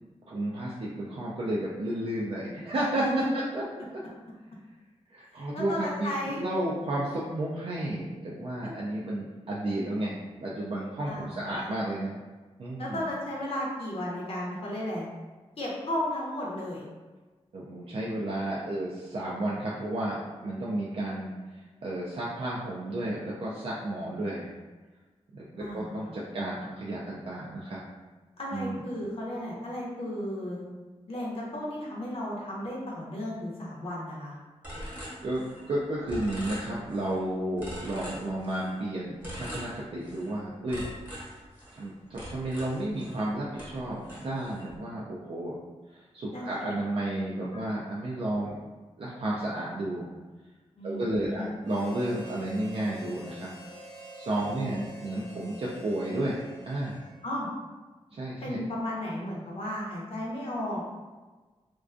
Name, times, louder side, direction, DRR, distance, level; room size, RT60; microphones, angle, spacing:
voice 1, 0.3-3.0 3.3-3.6 3.9-4.0 5.1-12.2 12.6-13.0 17.5-24.5 25.3-27.8 28.5-28.8 35.2-40.9 41.7-45.6 45.9-48.6 49.0-50.1 50.8-53.5 54.1-57.1 58.1-58.6, right 1 dB, 55° right, -6 dB, 0.3 m, -32 dB
voice 2, 5.4-6.4 11.1-11.7 12.8-15.1 15.6-16.8 25.6-26.1 28.4-30.6 31.1-34.3 46.3-46.7 47.5-47.6 50.8-51.5 54.5-54.8 57.2-57.5 58.4-60.8, left 1 dB, 60° left, -5 dB, 0.6 m, -34 dB
sound 1, 34.6-35.8 36.1-37.2 37.6-38.8 39.2-40.3 40.7-43.3 43.6-44.7, equal, 15° right, 0.9 m, -41 dB
Harmonica, 51.6-57.4, right 2 dB, 80° right, 0.8 m, -47 dB
2.4 x 2.2 x 2.4 m, 1.3 s
wide cardioid pair, 125°, 12 cm